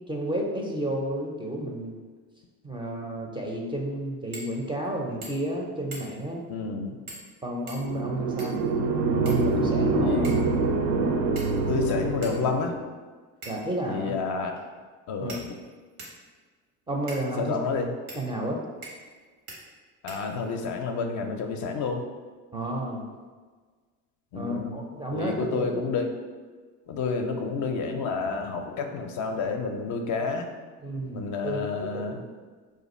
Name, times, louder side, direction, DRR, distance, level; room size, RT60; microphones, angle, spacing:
voice 1, 0.1-1.9 2.6-6.4 7.4-8.6 9.2-10.3 13.5-14.1 15.2-15.4 16.9-17.6 18.1-18.6 22.5-23.0 24.3-25.8 30.8-32.2, right 1 dB, 15° right, -1 dB, 0.4 m, -31 dB
sound 1, 4.3-4.5 4.8-4.9 5.2-5.5 5.9-6.3 7.1-7.3 7.7-8.7 9.2-9.8 10.2-10.5 11.4-11.8 12.2-12.4 13.4-13.8 14.6-14.7 15.3-16.2 17.1-17.3 18.1-18.2 18.8-19.2 19.5-19.6 20.1-20.6, right 2 dB, 90° right, 1.0 m, -43 dB
voice 2, 6.5-7.0 10.0-10.3 11.7-12.8 13.9-14.5 15.1-15.4 17.4-17.9 20.0-22.0 24.3-24.8 25.1-26.1 26.9-30.5 31.1-32.2, left 4 dB, 45° left, 4 dB, 0.4 m, -29 dB
sound 2, 7.8-12.7, right 3 dB, 65° right, 0.5 m, -25 dB
2.5 x 2.4 x 4.1 m, 1.5 s
supercardioid pair, 75°, 41 cm